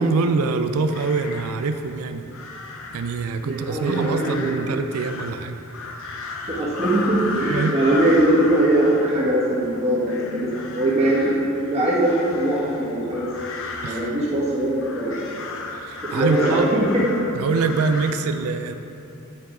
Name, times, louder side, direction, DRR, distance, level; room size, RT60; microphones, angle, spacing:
voice 1, 0.0-2.2 2.9-5.6 7.5-7.8 13.8-14.1 15.7-16.7 17.3-18.7, right 4 dB, 70° right, 8 dB, 0.4 m, -24 dB
sound 1, 0.7-18.1, left 3 dB, 65° left, 0.7 m, -35 dB
voice 2, 3.4-4.6 6.5-13.3 13.8-15.3 16.0-17.2, right 1 dB, 30° right, -7 dB, 1.6 m, -21 dB
9.3 x 4.7 x 3.8 m, 2.7 s
head